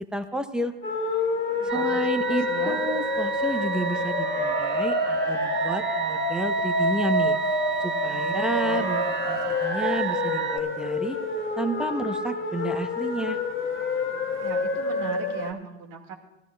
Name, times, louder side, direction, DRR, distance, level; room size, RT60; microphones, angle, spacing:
voice 1, 0.1-0.7 1.6-7.4 7.8-11.2 11.6-13.4, right 1 dB, ahead, 8 dB, 0.8 m, -31 dB
sound 1, 0.8-15.5, left 3 dB, 35° left, 1.7 m, -28 dB
voice 2, 1.5-2.8 8.0-9.2 14.4-16.1, right 6 dB, 60° right, 1 dB, 2.1 m, -39 dB
sound 2, 1.7-10.6, right 8 dB, 30° right, 1.3 m, -31 dB
17.5 x 13.5 x 2.3 m, 0.98 s
hypercardioid pair, 85°, 37 cm